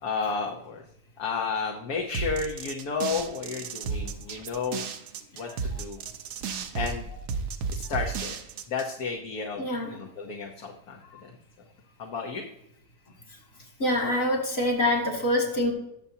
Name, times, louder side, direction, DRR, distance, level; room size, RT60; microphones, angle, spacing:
voice 1, 0.0-0.8 1.2-4.9 5.3-6.0 6.7-7.1 7.7-8.4 8.7-11.3 12.0-12.5, left 5 dB, 70° left, 0 dB, 1.6 m, -32 dB
sound 1, 2.1-8.9, right 5 dB, 80° right, 1.4 m, -33 dB
voice 2, 9.6-9.9 13.8-15.7, left 1 dB, 55° left, 1 dB, 2.9 m, -25 dB
20.5 x 7.0 x 2.8 m, 0.79 s
omnidirectional pair, 1.7 m